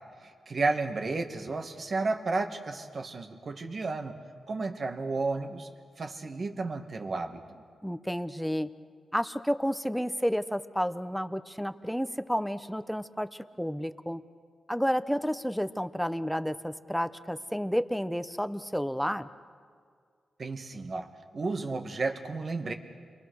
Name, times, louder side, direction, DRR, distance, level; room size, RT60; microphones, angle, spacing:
voice 1, 0.2-4.1 4.5-5.7 6.0-7.6 20.4-22.7, right 3 dB, 50° right, 5 dB, 2.2 m, -32 dB
voice 2, 7.8-8.7 9.1-14.2 14.7-19.3, equal, ahead, 11 dB, 1.0 m, -31 dB
30.0 x 23.0 x 6.6 m, 2.1 s
cardioid pair, 70°, 0 cm